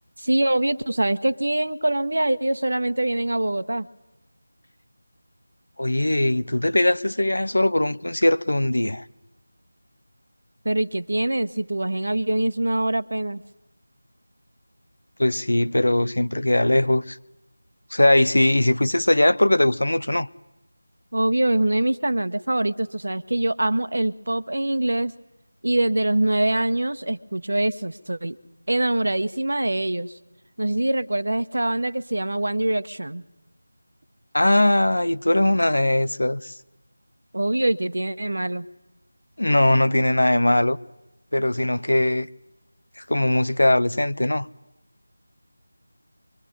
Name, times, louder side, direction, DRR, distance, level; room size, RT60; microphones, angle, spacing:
voice 1, 0.2-3.9 10.6-13.4 21.1-25.1 25.6-28.4 28.7-30.1 30.6-33.2 37.3-38.7, right 1 dB, 60° right, 1.3 m, -24 dB
voice 2, 5.8-9.0 15.2-17.2 17.9-20.3 34.3-36.5 39.4-40.8 41.3-42.3 43.0-44.5, left 1 dB, 65° left, 1.0 m, -20 dB
24.5 x 24.0 x 9.9 m
figure-of-eight pair, 165°, 0 cm